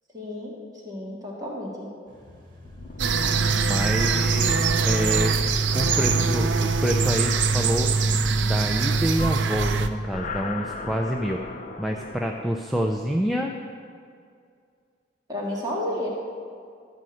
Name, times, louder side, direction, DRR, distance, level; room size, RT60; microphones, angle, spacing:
voice 1, 0.1-0.5 0.8-1.9 15.3-16.1, left 1 dB, 20° right, -5 dB, 1.9 m, -31 dB
sound 1, 2.1-9.1, left 1 dB, 55° right, 2.1 m, -49 dB
sound 2, 2.6-8.2 9.9-12.4, left 3 dB, 45° left, 0.6 m, -38 dB
sound 3, 3.0-9.9, right 4 dB, 80° right, 0.6 m, -22 dB
voice 2, 3.7-5.4 5.7-8.0 8.4-11.4 11.8-13.5, equal, ahead, 1 dB, 0.5 m, -27 dB
13.0 x 5.2 x 7.7 m, 2.2 s
head